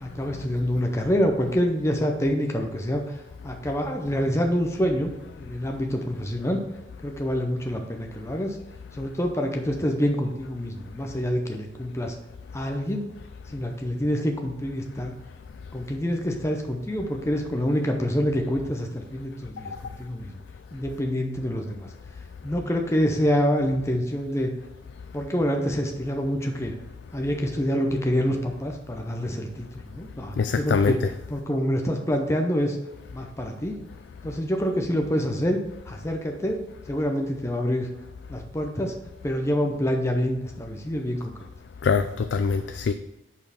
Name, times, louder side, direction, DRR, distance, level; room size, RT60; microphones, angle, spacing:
voice 1, 0.0-5.1 5.4-6.6 7.0-8.6 8.9-12.2 12.5-13.1 13.5-15.1 15.7-20.4 20.7-21.9 22.4-24.5 25.1-26.7 27.1-31.0 31.3-32.8 33.1-33.8 34.2-35.6 35.9-36.6 36.9-37.9 38.3-38.9 39.2-41.5, equal, 15° left, 2 dB, 0.6 m, -26 dB
voice 2, 30.4-31.1 41.8-42.9, left 5 dB, 65° left, 8 dB, 0.3 m, -23 dB
5.5 x 4.3 x 6.0 m, 0.95 s
head